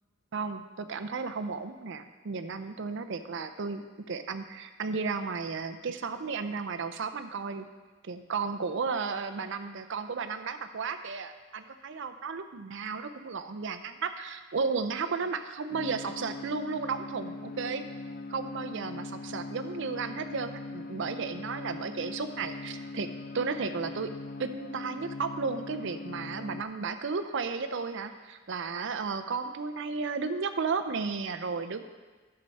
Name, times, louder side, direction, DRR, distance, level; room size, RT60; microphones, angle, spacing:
voice 1, 0.3-7.7 8.0-17.8 18.3-23.1 23.3-24.1 24.4-31.8, right 5 dB, 55° right, 9 dB, 0.5 m, -34 dB
sound 1, 15.7-26.6, left 3 dB, 40° left, 0.3 m, -41 dB
11.5 x 6.8 x 4.1 m, 1.4 s
head